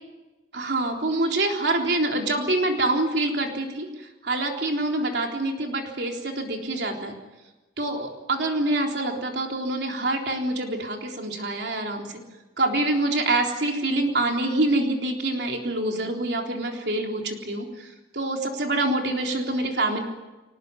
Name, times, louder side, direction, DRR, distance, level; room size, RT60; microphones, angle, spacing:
voice 1, 0.5-3.9 4.2-7.1 7.8-12.2 12.6-20.0, right 2 dB, 65° right, 2 dB, 3.8 m, -26 dB
24.0 x 19.5 x 9.7 m, 1.1 s
head